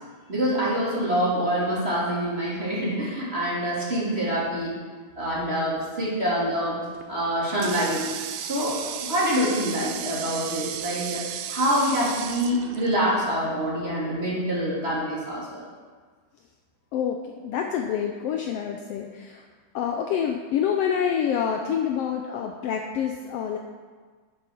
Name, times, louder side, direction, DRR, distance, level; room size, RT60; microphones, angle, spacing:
voice 1, 0.3-4.7 5.2-6.8 7.1-8.0 8.4-15.6, equal, 20° right, -7 dB, 2.8 m, -26 dB
Water tap faucet, 6.9-13.4, right 10 dB, 85° right, 1.4 m, -35 dB
voice 2, 16.9-19.4 19.7-23.6, left 8 dB, 85° left, 3 dB, 1.3 m, -27 dB
8.9 x 7.6 x 6.1 m, 1.5 s
omnidirectional pair, 3.5 m